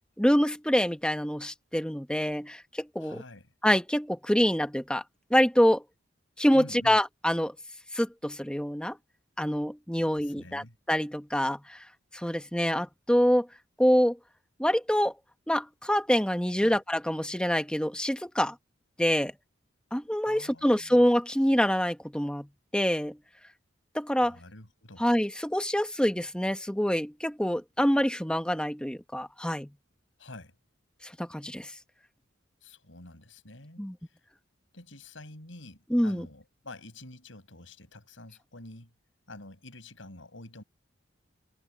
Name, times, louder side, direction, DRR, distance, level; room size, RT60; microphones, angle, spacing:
voice 1, 0.2-3.2 3.6-5.0 5.3-5.8 6.4-7.5 7.9-9.0 9.4-11.8 12.1-13.5 13.8-14.2 14.6-15.1 15.5-18.5 19.0-19.3 19.9-22.5 22.7-23.2 23.9-24.4 25.0-29.7 31.0-31.7 33.8-33.9 35.9-36.3, equal, 5° left, 1.1 m, -26 dB
voice 2, 3.0-3.5 6.5-7.0 10.0-10.8 16.6-16.8 20.2-21.0 24.2-25.1 30.2-30.5 32.6-34.2 34.7-38.9 39.3-40.6, left 2 dB, 80° left, 5.5 m, -48 dB
head